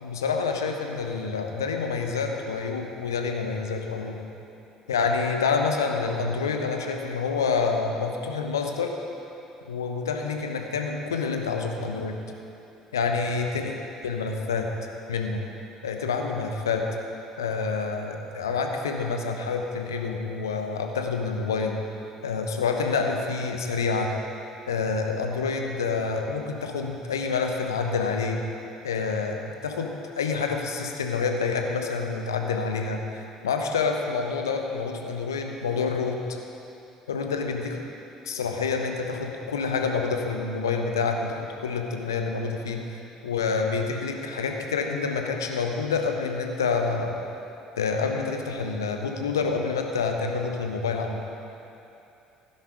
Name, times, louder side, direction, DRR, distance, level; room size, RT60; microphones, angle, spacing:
voice 1, 0.0-4.2 4.9-8.9 9.7-12.2 12.9-13.7 14.0-14.7 15.1-15.4 15.8-16.8 17.4-21.8 22.2-24.1 24.7-28.4 28.8-36.2 37.1-37.8 38.2-42.8 43.2-47.2 47.8-51.2, left 4 dB, 75° left, 3 dB, 1.1 m, -27 dB
16.5 x 10.0 x 5.0 m, 2.8 s
figure-of-eight pair, 55°, 2 cm